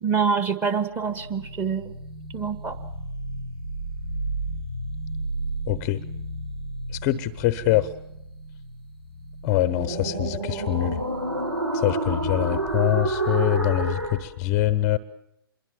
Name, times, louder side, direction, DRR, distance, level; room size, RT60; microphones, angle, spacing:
voice 1, 0.0-2.0 2.3-2.8, right 6 dB, 15° right, 11 dB, 1.7 m, -26 dB
sound 1, 1.0-14.2, right 2 dB, 85° right, 6.0 m, -31 dB
voice 2, 5.7-6.0 7.0-7.8 9.4-10.9 11.8-14.0 14.4-15.0, left 14 dB, 25° left, 16 dB, 0.8 m, -23 dB
26.5 x 22.0 x 7.3 m, 0.83 s
figure-of-eight pair, 125°, 13 cm